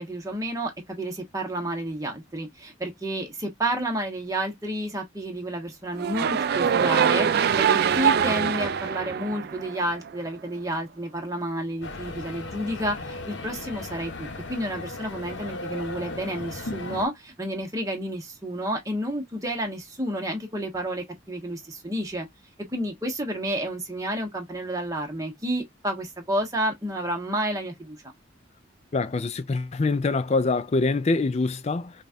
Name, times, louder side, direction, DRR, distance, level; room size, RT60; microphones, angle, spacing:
voice 1, 0.0-22.3 22.7-28.0, right 1 dB, 15° right, 1.2 m, -30 dB
sound 1, 5.9-10.1, right 7 dB, 50° right, 0.3 m, -23 dB
sound 2, 11.8-17.1, left 2 dB, 60° left, 0.9 m, -36 dB
voice 2, 28.9-31.9, left 3 dB, 30° left, 0.4 m, -24 dB
5.1 x 2.4 x 2.7 m
head